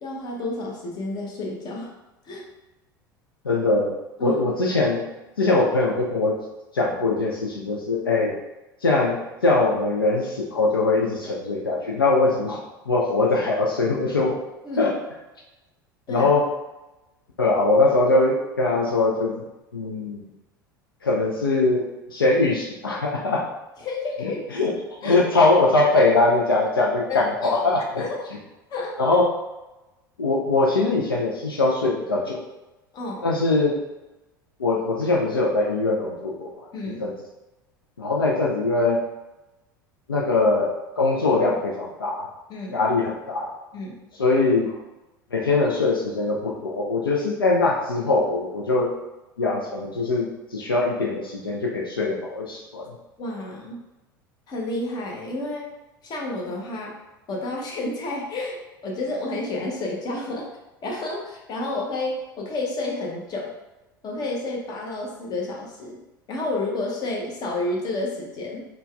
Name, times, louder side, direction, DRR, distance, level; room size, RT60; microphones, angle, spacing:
voice 1, 0.0-1.9 2.2-2.4 4.2-4.4 14.6-14.8 16.1-16.3 23.8-24.4 25.0-25.2 27.1-27.6 28.0-28.2 28.7-29.0 32.9-33.2 36.7-37.1 42.5-42.8 43.7-44.0 53.2-53.8 54.5-55.7 56.0-57.0 57.3-60.5 60.8-63.5 64.0-66.0 66.3-68.7, left 2 dB, 35° left, -1 dB, 1.0 m, -30 dB
voice 2, 3.4-5.0 5.4-6.4 6.7-8.3 8.8-12.6 12.9-14.4 14.8-15.0 16.1-16.5 17.4-19.4 19.7-20.3 21.0-23.5 24.2-24.7 25.0-28.0 29.0-29.3 30.2-32.4 33.2-33.8 34.6-36.5 37.0-37.1 38.0-39.0 40.1-42.3 42.7-43.5 44.1-44.7 45.3-48.9 49.4-52.9, left 3 dB, 80° left, -2 dB, 0.5 m, -22 dB
4.4 x 2.3 x 3.4 m, 1.0 s
figure-of-eight pair, 75°, 12 cm